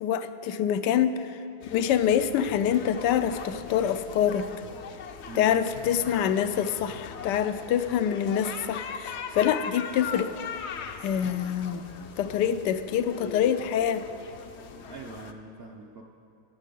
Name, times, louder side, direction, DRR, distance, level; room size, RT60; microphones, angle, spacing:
voice 1, 0.0-1.4 1.7-4.5 5.3-10.4 11.0-11.9 12.2-14.0, left 9 dB, 85° left, 11 dB, 1.2 m, -26 dB
sound 1, 1.6-15.3, left 6 dB, 65° left, 0.7 m, -40 dB
voice 2, 14.8-16.0, right 3 dB, 55° right, 2 dB, 0.7 m, -42 dB
16.0 x 8.2 x 5.3 m, 2.6 s
omnidirectional pair, 1.8 m